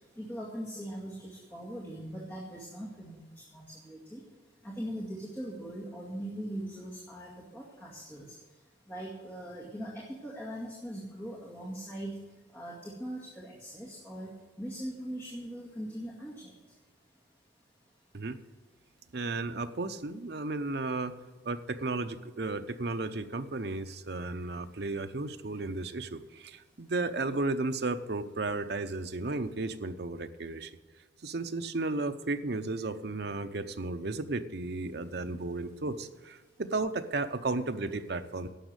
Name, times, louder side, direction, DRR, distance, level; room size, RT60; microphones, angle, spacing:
voice 1, 0.2-3.2 3.5-4.2 4.6-8.3 8.9-12.1 12.5-14.3 14.6-16.5, equal, 10° left, -5 dB, 2.1 m, -40 dB
voice 2, 19.1-30.8 31.2-38.5, right 3 dB, 55° right, 9 dB, 0.7 m, -34 dB
11.5 x 7.3 x 8.0 m, 1.3 s
head